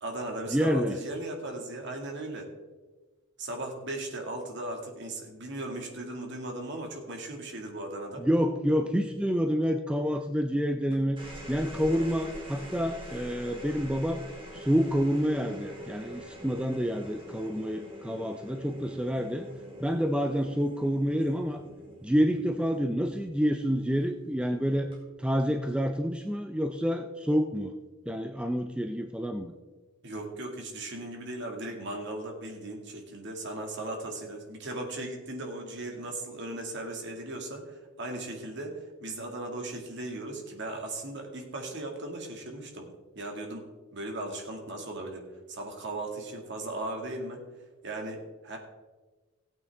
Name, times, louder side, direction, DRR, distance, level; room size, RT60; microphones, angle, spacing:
voice 1, 0.0-2.5 3.4-8.3 30.0-42.9 43.1-43.6 43.9-47.4 47.8-48.6, right 2 dB, 55° right, 2 dB, 2.1 m, -37 dB
voice 2, 0.5-1.0 8.2-11.2 11.5-14.2 14.5-19.4 19.8-21.6 22.0-24.9 25.2-27.7 28.1-29.5, equal, 5° right, 5 dB, 0.4 m, -28 dB
sound 1, 10.9-23.5 24.7-25.2, equal, 25° right, 2.6 m, -45 dB
16.5 x 8.7 x 3.5 m, 1.3 s
head